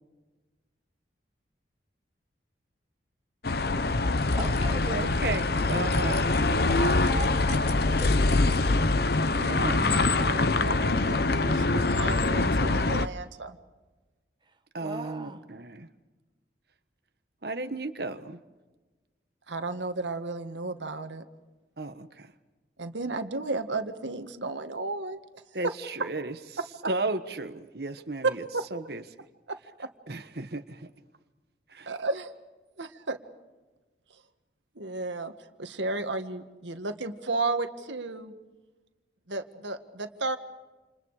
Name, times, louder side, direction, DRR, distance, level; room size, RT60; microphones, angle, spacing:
sound 1, 3.4-13.1, left 2 dB, 55° left, 0.8 m, -24 dB
sound 2, 3.8-8.9, left 4 dB, 35° left, 3.4 m, -48 dB
voice 1, 4.4-5.1 6.6-8.9 14.4-14.6 14.8-15.4, right 3 dB, 25° right, 6 dB, 1.1 m, -40 dB
voice 2, 4.9-6.3 9.4-10.4 14.7-15.9 17.4-18.4 21.8-22.3 25.5-26.3 26.9-28.4 28.7-29.0 30.1-30.9 31.7-31.9, right 2 dB, 55° right, 9 dB, 1.4 m, -34 dB
voice 3, 9.4-13.5 19.5-21.2 22.8-25.2 25.6-25.7 28.5-28.7 29.5-29.9 31.9-32.3 32.8-33.2 34.8-35.3 35.6-38.3 39.3-40.4, right 2 dB, 80° right, 8 dB, 1.9 m, -33 dB
29.0 x 29.0 x 5.0 m, 1.2 s
head